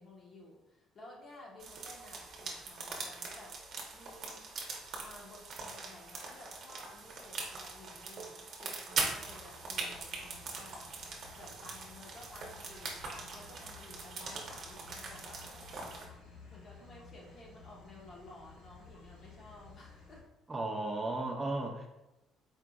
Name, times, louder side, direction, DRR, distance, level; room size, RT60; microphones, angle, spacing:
voice 1, 0.0-3.6 3.9-4.4 5.0-10.9 11.3-16.2 16.5-20.2, left 1 dB, 40° left, -2 dB, 1.2 m, -54 dB
sound 1, 1.6-16.1, right 4 dB, 50° right, 1.0 m, -42 dB
sound 2, 9.0-20.2, left 4 dB, 85° left, 1.5 m, -55 dB
voice 2, 20.5-21.9, right 2 dB, 20° right, 0 dB, 0.6 m, -35 dB
4.6 x 3.7 x 2.4 m, 0.94 s
cardioid pair, 110°, 0 cm